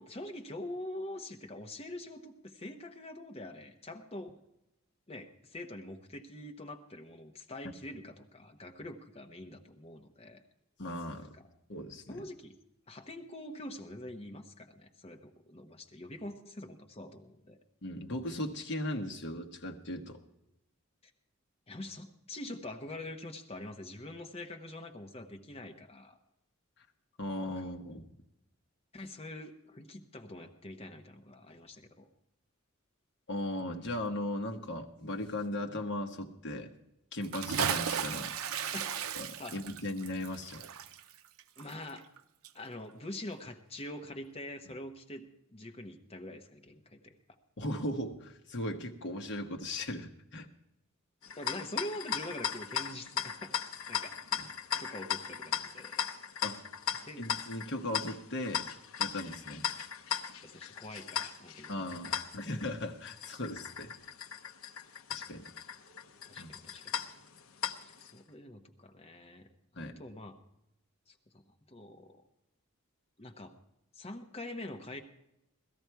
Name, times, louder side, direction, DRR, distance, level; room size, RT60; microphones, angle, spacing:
voice 1, 0.0-4.3 5.1-10.4 11.3-11.5 12.1-12.6 12.9-17.6 21.7-26.2 28.9-32.1 38.7-39.1 39.4-39.5 41.6-42.1 42.5-47.2 51.4-53.5 53.9-54.2 54.8-56.1 57.0-57.3 60.4-61.9 66.3-67.0 68.0-70.4 71.1-71.4 71.7-72.2 73.2-73.5 73.9-75.0, left 1 dB, 30° left, 4 dB, 0.9 m, -45 dB
voice 2, 10.8-11.3 11.7-12.2 17.8-20.2 27.2-28.1 33.3-36.7 37.1-38.3 39.1-40.6 47.6-50.5 54.3-54.4 56.4-56.6 57.2-58.7 59.0-59.7 61.7-63.9 65.1-65.5 66.4-66.5 69.8-69.9, left 1 dB, 55° left, 4 dB, 1.1 m, -37 dB
Bathtub (filling or washing) / Splash splatter, 37.2-42.2 42.4-42.5, right 8 dB, 80° right, 0.6 m, -35 dB
sound 1, 51.2-68.1, left 8 dB, 80° left, 0.7 m, -38 dB
17.0 x 13.0 x 4.6 m, 0.86 s
head